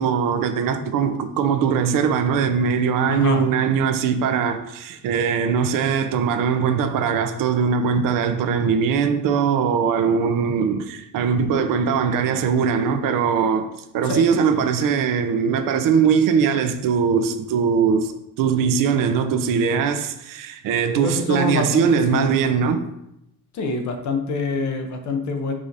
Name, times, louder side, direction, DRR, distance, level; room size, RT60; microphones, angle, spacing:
voice 1, 0.0-13.7 13.9-18.1 18.4-22.9, right 6 dB, 65° right, 0.5 m, -21 dB
voice 2, 3.1-3.5 14.0-14.3 21.0-22.7 23.5-25.5, left 4 dB, 55° left, 0.6 m, -26 dB
4.8 x 2.6 x 2.6 m
cardioid pair, 115°, 36 cm